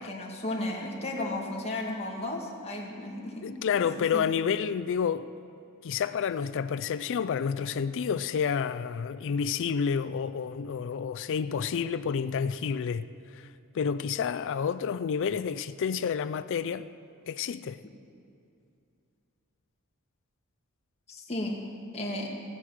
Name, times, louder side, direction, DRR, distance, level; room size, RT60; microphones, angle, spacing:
voice 1, 0.0-4.3 21.1-21.6 21.9-22.3, left 1 dB, 30° left, 1.9 m, -34 dB
voice 2, 3.4-5.3 5.8-16.9 17.3-17.8, left 6 dB, 60° left, 0.4 m, -29 dB
18.5 x 7.5 x 6.4 m
head